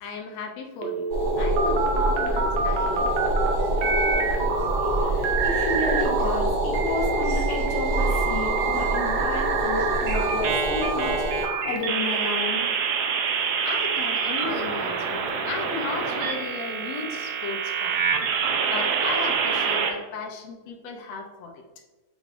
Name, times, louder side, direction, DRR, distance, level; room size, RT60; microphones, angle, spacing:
voice 1, 0.0-1.1 1.4-3.1 13.4-18.0 18.7-21.6, left 4 dB, 75° left, 2 dB, 1.7 m, -35 dB
sound 1, 0.8-3.5 3.8-6.4 6.7-19.9, right 6 dB, 75° right, 1.7 m, -27 dB
sound 2, 1.1-11.5, right 1 dB, 60° right, 1.0 m, -25 dB
voice 2, 5.0-12.6, left 2 dB, 60° left, -5 dB, 2.1 m, -31 dB
6.4 x 3.2 x 2.5 m, 1.2 s
omnidirectional pair, 3.4 m